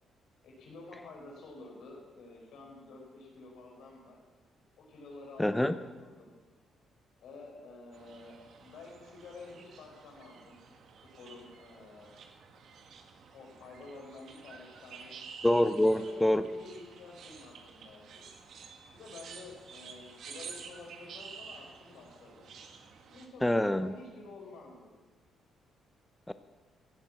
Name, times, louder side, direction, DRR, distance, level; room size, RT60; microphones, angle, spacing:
voice 1, 0.4-4.2 4.8-6.3 7.2-10.6 11.2-12.1 13.3-15.1 15.8-18.3 18.9-22.6 23.1-24.9, left 3 dB, 80° left, -1 dB, 5.3 m, -50 dB
voice 2, 5.4-5.7 15.4-16.4 23.4-23.9 26.3-26.4, left 1 dB, 10° left, 11 dB, 0.6 m, -25 dB
sound 1, 7.9-23.3, right 6 dB, 65° right, 1.7 m, -51 dB
16.0 x 9.0 x 7.5 m, 1.3 s
cardioid pair, 90°, 0 cm